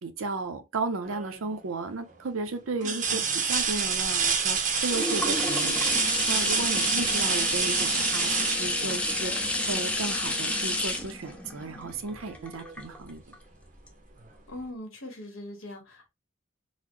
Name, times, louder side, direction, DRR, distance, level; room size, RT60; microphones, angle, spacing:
voice 1, 0.0-5.9 6.3-13.2, right 3 dB, 80° right, 0.6 m, -34 dB
sound 1, 1.1-1.5 2.1-2.2 2.8-9.5 11.3-11.4 11.9-12.9 14.2-14.3, right 6 dB, 40° right, 0.6 m, -28 dB
voice 2, 2.8-3.3 7.3-7.9 14.5-16.1, left 1 dB, 80° left, 1.4 m, -42 dB
sound 2, 3.6-13.3 13.9-14.0, left 1 dB, 5° left, 0.4 m, -30 dB
3.9 x 2.1 x 3.0 m
head